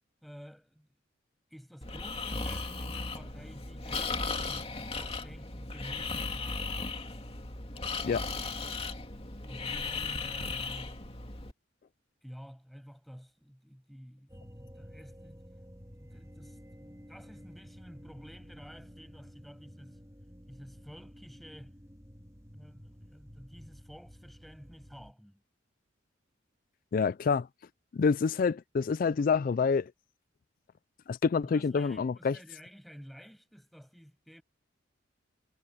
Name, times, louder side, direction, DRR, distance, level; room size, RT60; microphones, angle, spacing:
voice 1, 0.2-0.9 1.5-6.7 9.4-11.0 12.2-15.4 16.0-20.0 20.5-21.7 22.5-25.4 31.4-34.4, equal, ahead, 6.8 m, -51 dB
Breathing, 1.8-11.5, left 3 dB, 30° left, 2.5 m, -36 dB
sound 1, 14.3-25.1, equal, 15° right, 3.1 m, -52 dB
voice 2, 26.9-27.5 27.9-29.9 31.1-32.4, left 5 dB, 45° left, 0.3 m, -27 dB
head